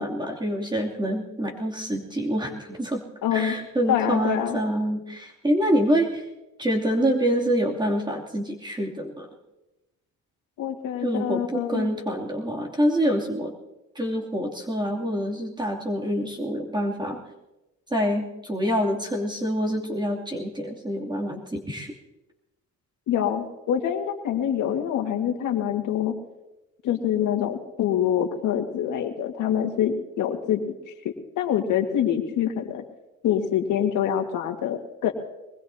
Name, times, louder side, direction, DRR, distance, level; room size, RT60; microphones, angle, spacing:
voice 1, 0.0-3.0 3.3-6.2 6.6-9.3 11.0-13.5 13.9-17.2 17.9-21.9, equal, 15° right, -2 dB, 2.8 m, -26 dB
voice 2, 3.2-3.5 3.9-4.6 10.6-11.9 23.1-26.1 26.8-30.6 31.0-32.8 33.2-35.1, left 9 dB, 85° left, 4 dB, 1.9 m, -25 dB
24.0 x 20.5 x 2.8 m, 0.98 s
cardioid pair, 90°, 30 cm